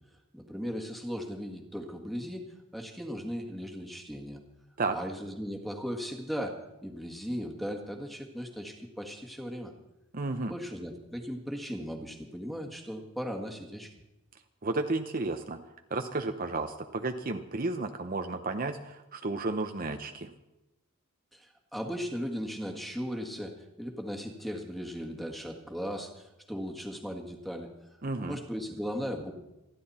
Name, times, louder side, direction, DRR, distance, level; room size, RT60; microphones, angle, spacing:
voice 1, 0.3-2.5 2.7-4.4 4.9-9.7 10.5-13.9 21.3-27.7 28.3-29.3, equal, ahead, 3 dB, 1.8 m, -37 dB
voice 2, 10.1-10.5 14.6-15.6 15.9-20.3 28.0-28.4, right 3 dB, 40° right, 6 dB, 0.8 m, -32 dB
28.0 x 11.0 x 4.3 m, 0.96 s
head